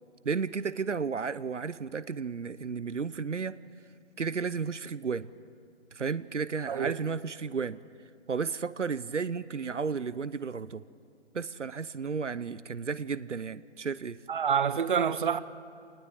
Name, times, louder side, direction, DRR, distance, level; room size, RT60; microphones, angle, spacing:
voice 1, 0.2-3.6 4.2-5.3 5.9-7.8 8.3-10.8 11.3-14.2, right 5 dB, 80° right, 0.8 m, -33 dB
voice 2, 14.3-15.4, right 7 dB, 45° right, 0.9 m, -27 dB
26.5 x 19.5 x 8.2 m
figure-of-eight pair, 150°, 36 cm